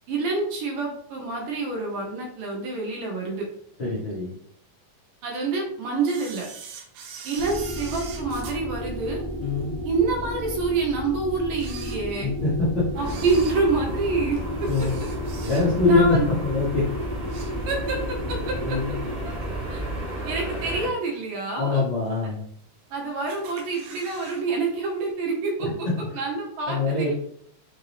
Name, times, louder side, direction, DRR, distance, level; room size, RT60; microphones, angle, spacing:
voice 1, 0.1-3.5 5.2-6.5 7.2-9.2 9.8-12.3 13.0-14.4 14.8-14.9 15.8-16.3 17.7-18.8 19.2-19.3 19.7-19.8 20.2-21.8 22.2-22.3 22.9-25.9 26.1-27.1, right 3 dB, 70° right, 0 dB, 2.5 m, -27 dB
voice 2, 3.8-4.3 9.4-9.7 12.2-12.9 14.6-15.0 15.4-16.8 17.2-17.3 18.6-18.9 21.6-22.4 25.6-25.7 26.7-27.1, left 3 dB, 80° left, -7 dB, 1.0 m, -23 dB
Camera, 6.0-9.6 10.1-10.2 10.9-11.0 11.5-12.5 13.0-16.0 16.3-16.6 17.0-18.0 18.4-18.5 19.4-19.5 20.1-20.5 20.9-21.0 21.2-21.3 21.5-21.6 22.3-22.9 23.3-24.4 24.7-24.8 25.1-25.2, right 6 dB, 90° right, 2.7 m, -43 dB
sound 1, 7.4-20.0, equal, 60° left, 1.3 m, -33 dB
sound 2, 12.9-20.9, equal, 45° right, 0.9 m, -34 dB
5.8 x 2.7 x 3.1 m, 0.66 s
omnidirectional pair, 4.2 m